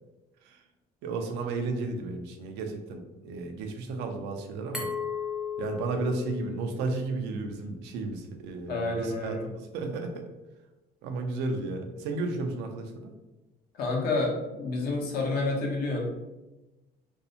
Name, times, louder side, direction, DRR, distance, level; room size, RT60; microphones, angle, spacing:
voice 1, 1.0-4.9 5.6-10.3 11.0-13.1, right 3 dB, 85° right, 5 dB, 0.4 m, -33 dB
Glass, 4.7-7.5, left 6 dB, ahead, 0.5 m, -36 dB
voice 2, 8.7-9.5 13.8-16.1, left 2 dB, 65° left, 0 dB, 0.7 m, -29 dB
2.6 x 2.0 x 2.6 m, 1.0 s
cardioid pair, 110°, 17 cm